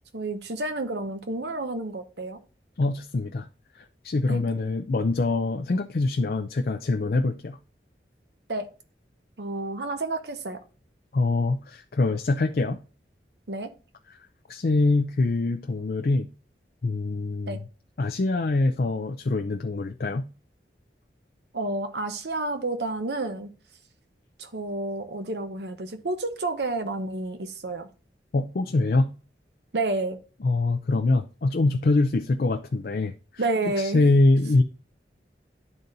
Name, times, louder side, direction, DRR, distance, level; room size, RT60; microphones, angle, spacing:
voice 1, 0.1-2.4 4.3-4.4 8.5-8.7 9.4-10.6 13.5-13.7 17.5-17.6 21.5-23.5 24.4-27.9 29.7-30.2 33.4-34.1, right 2 dB, 75° right, 0.9 m, -30 dB
voice 2, 2.8-3.5 3.8-7.6 11.1-12.8 14.5-16.3 16.8-17.6 18.0-20.3 28.3-29.1 30.4-33.1 33.8-34.6, left 2 dB, 55° left, 0.4 m, -24 dB
12.0 x 4.0 x 2.6 m
head